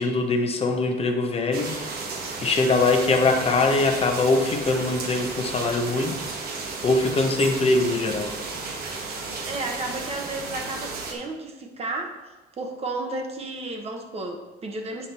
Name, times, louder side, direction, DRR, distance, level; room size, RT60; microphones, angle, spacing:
voice 1, 0.0-2.0 2.4-6.4 6.8-8.3, left 3 dB, 35° left, 4 dB, 0.9 m, -22 dB
sound 1, 1.5-11.1, right 4 dB, 70° right, 1.3 m, -33 dB
voice 2, 9.4-15.1, right 2 dB, 35° right, 3 dB, 1.2 m, -33 dB
8.5 x 4.9 x 4.3 m, 1.1 s
cardioid pair, 110°, 17 cm